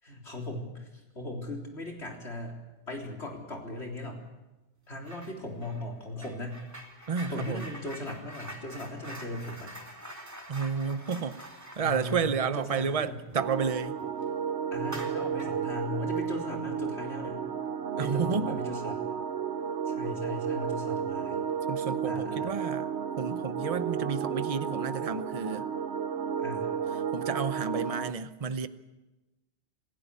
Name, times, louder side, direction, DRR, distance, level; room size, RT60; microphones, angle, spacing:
voice 1, 0.0-4.2 4.9-6.6 7.3-9.7 11.8-13.2 14.7-17.4 18.0-19.0 19.9-21.4 22.0-22.5 26.4-26.7, left 2 dB, 80° left, 4.1 m, -38 dB
sound 1, 5.0-5.4 5.6-13.8 14.1-14.3 14.8-15.7, right 1 dB, 15° right, 2.7 m, -46 dB
voice 2, 7.1-7.7 10.5-11.4 11.8-14.0 18.0-18.6 21.7-22.9 23.2-25.7 27.1-28.7, right 6 dB, 35° right, 0.9 m, -31 dB
sound 2, 13.4-28.1, right 7 dB, 85° right, 1.2 m, -33 dB
28.0 x 15.5 x 8.4 m
omnidirectional pair, 1.1 m